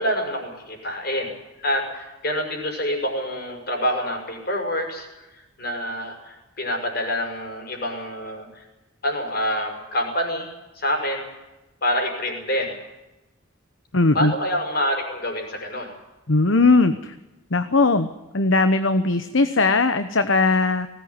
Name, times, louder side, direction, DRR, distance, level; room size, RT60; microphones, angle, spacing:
voice 1, 0.0-5.1 5.6-8.6 9.0-10.5 10.7-11.3 11.8-12.8 14.1-15.9, equal, 45° left, 3 dB, 6.0 m, -26 dB
voice 2, 13.9-14.3 16.3-17.1 17.5-18.1 18.3-20.9, left 3 dB, 60° left, 10 dB, 1.0 m, -19 dB
20.0 x 17.5 x 9.8 m, 1.0 s
head